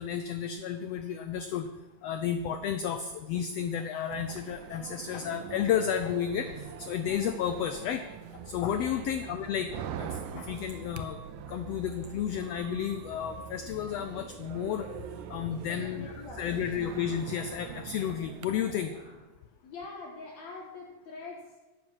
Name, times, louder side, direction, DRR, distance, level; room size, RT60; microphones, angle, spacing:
voice 1, 0.0-1.7 2.0-8.0 8.5-9.7 10.0-11.2 11.5-14.9 15.3-18.9, left 8 dB, 80° left, 9 dB, 1.4 m, -32 dB
sound 1, 4.1-18.5, right 9 dB, 80° right, 2.1 m, -44 dB
sound 2, 7.1-19.2, right 1 dB, 25° right, 3.7 m, -51 dB
voice 2, 8.8-9.1 15.7-16.9 19.6-21.6, left 4 dB, 65° left, -1 dB, 2.5 m, -45 dB
12.0 x 8.1 x 7.3 m, 1.2 s
omnidirectional pair, 3.6 m